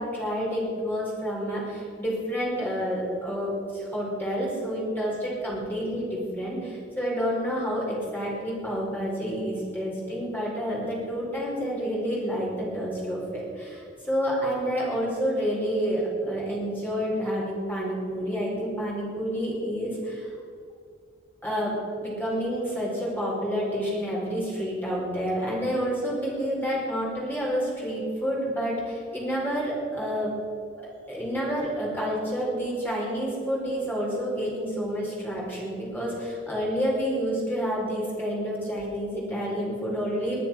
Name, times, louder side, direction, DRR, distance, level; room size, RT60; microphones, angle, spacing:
voice 1, 0.0-20.3 21.4-30.3 31.1-40.5, equal, 10° left, -5 dB, 4.9 m, -29 dB
20.5 x 9.3 x 5.9 m, 2.4 s
head